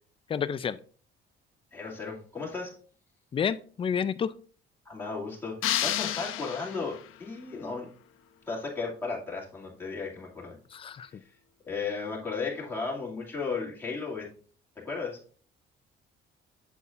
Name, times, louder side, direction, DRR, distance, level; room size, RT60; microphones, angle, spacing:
voice 1, 0.3-0.8 3.3-4.3 10.7-11.1, left 7 dB, 25° left, 15 dB, 0.4 m, -29 dB
voice 2, 1.7-2.7 4.9-7.9 8.5-10.6 11.7-14.3 14.8-15.2, left 4 dB, 10° left, -4 dB, 2.3 m, -35 dB
sound 1, 5.6-7.2, left 12 dB, 75° left, 0.7 m, -30 dB
8.1 x 7.1 x 2.5 m, 0.42 s
cardioid pair, 140°, 21 cm